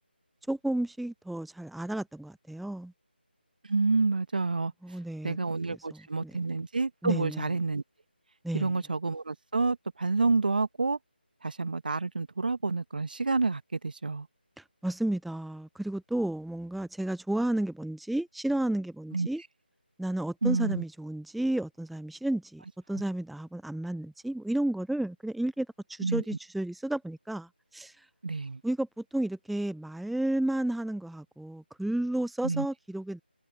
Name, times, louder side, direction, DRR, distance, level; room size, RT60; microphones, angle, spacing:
voice 1, 0.5-2.9 4.8-5.4 5.7-6.0 7.0-7.4 8.4-8.7 14.6-19.4 20.0-22.6 22.9-28.1 28.6-28.9 29.1-33.2, right 1 dB, ahead, 0.6 m, -32 dB
voice 2, 3.6-4.7 5.2-7.8 8.5-11.0 11.4-14.3 19.1-19.3 20.4-20.8 26.0-26.2 28.2-28.6 32.4-32.7, right 3 dB, 55° right, 1.8 m, -28 dB
figure-of-eight pair, 160°, 6 cm